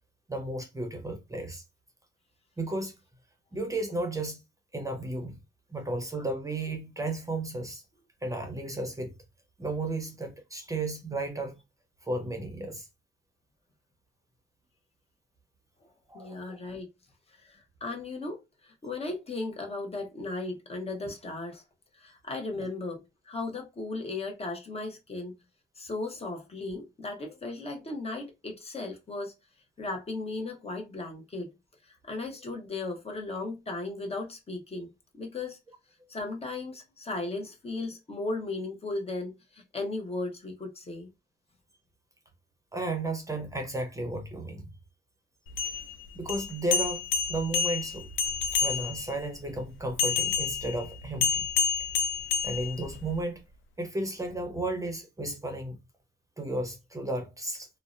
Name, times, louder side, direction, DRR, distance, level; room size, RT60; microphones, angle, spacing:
voice 1, 0.3-1.6 2.6-3.0 3.5-4.4 4.7-5.4 5.7-7.8 8.2-9.1 9.6-11.6 12.0-12.9 16.1-16.6 22.6-22.7 42.7-44.7 45.6-45.7 46.1-47.0 47.3-48.1 48.5-51.5 51.8-51.9 52.4-53.4 53.8-55.8 56.4-57.7, right 2 dB, 15° right, 0.6 m, -33 dB
voice 2, 16.1-16.9 17.4-21.6 21.9-25.3 25.8-29.3 29.8-31.5 31.8-35.6 36.1-41.1, left 2 dB, 30° left, 0.8 m, -36 dB
sound 1, 45.5-49.2 50.0-53.2, left 6 dB, 80° left, 0.4 m, -29 dB
2.6 x 2.0 x 2.4 m
cardioid pair, 90°, 20 cm